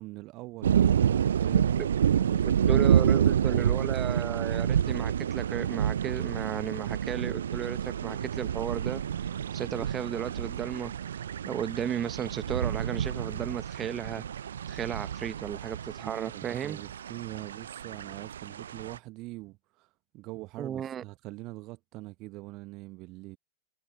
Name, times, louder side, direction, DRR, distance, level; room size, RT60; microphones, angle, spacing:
voice 1, 0.0-3.8 16.0-23.4, right 21 dB, 40° right, 1.0 m, -43 dB
sound 1, 0.6-19.0, right 9 dB, 65° right, 0.7 m, -28 dB
voice 2, 1.5-1.9 2.7-9.0 9.5-10.9 11.4-14.2 14.7-16.8 20.6-21.0, right 9 dB, 25° right, 1.3 m, -34 dB
figure-of-eight pair, 90°, 0 cm